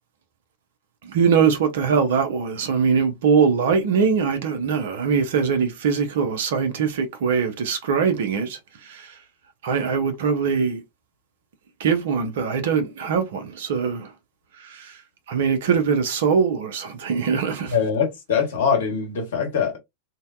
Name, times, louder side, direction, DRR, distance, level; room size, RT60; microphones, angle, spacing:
voice 1, 1.1-8.6 8.9-9.1 9.6-10.8 11.8-14.1 14.7-14.9 15.3-17.7, right 6 dB, 55° right, 0.6 m, -22 dB
voice 2, 17.7-19.8, left 6 dB, 60° left, 0.9 m, -23 dB
2.7 x 2.1 x 2.3 m
figure-of-eight pair, 90°, 0 cm